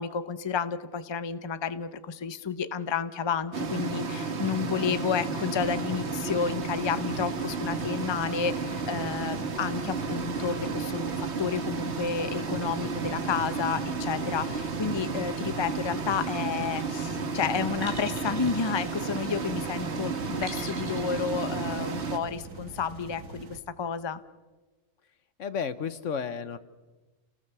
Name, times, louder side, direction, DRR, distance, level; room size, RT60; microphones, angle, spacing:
voice 1, 0.0-24.2, left 6 dB, 25° left, 13 dB, 0.7 m, -31 dB
sound 1, 3.5-22.2, right 4 dB, 55° right, 1.7 m, -32 dB
sound 2, 5.6-23.6, right 3 dB, 85° right, 1.9 m, -46 dB
sound 3, 16.3-16.7 17.8-19.5 20.4-21.4, right 1 dB, 40° right, 4.1 m, -43 dB
voice 2, 25.4-26.6, left 6 dB, 70° left, 14 dB, 1.3 m, -32 dB
29.0 x 19.0 x 6.9 m, 1.2 s
omnidirectional pair, 1.3 m